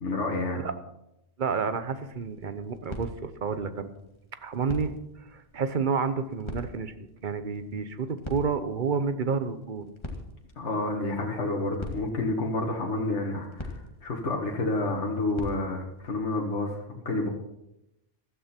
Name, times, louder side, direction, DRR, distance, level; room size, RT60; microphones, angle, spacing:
voice 1, 0.0-0.6 10.6-17.3, left 2 dB, 70° left, 0 dB, 2.1 m, -29 dB
voice 2, 1.4-3.9 4.4-6.9 7.2-9.9, right 5 dB, 45° right, 11 dB, 1.1 m, -30 dB
sound 1, 1.7-16.2, left 2 dB, 25° left, 2.0 m, -44 dB
15.5 x 13.0 x 4.5 m, 0.85 s
omnidirectional pair, 1.2 m